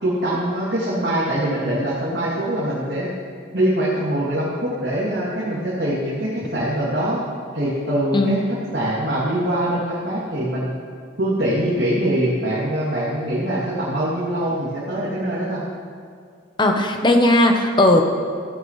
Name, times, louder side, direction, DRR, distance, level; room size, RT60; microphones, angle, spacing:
voice 1, 0.0-3.1 3.5-7.2 7.5-8.4 8.7-10.7 11.2-15.6, right 1 dB, 60° right, -10 dB, 2.7 m, -23 dB
voice 2, 8.1-8.4 16.6-18.0, left 1 dB, 20° left, 4 dB, 0.9 m, -16 dB
15.5 x 12.0 x 3.2 m, 2.2 s
head